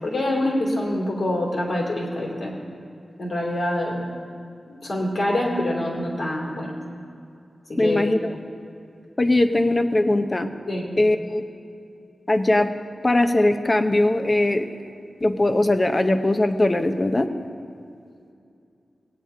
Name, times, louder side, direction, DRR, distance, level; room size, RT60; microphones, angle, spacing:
voice 1, 0.0-2.6 3.2-4.0 4.7-6.7 7.7-8.1 10.7-10.9, left 1 dB, 55° left, -2 dB, 2.8 m, -25 dB
voice 2, 7.8-8.2 9.2-10.5 11.0-11.4 12.3-12.7 13.0-14.7 15.2-17.3, left 1 dB, 30° left, 8 dB, 0.7 m, -20 dB
18.0 x 9.2 x 3.7 m, 2.5 s
cardioid pair, 60°, 0 cm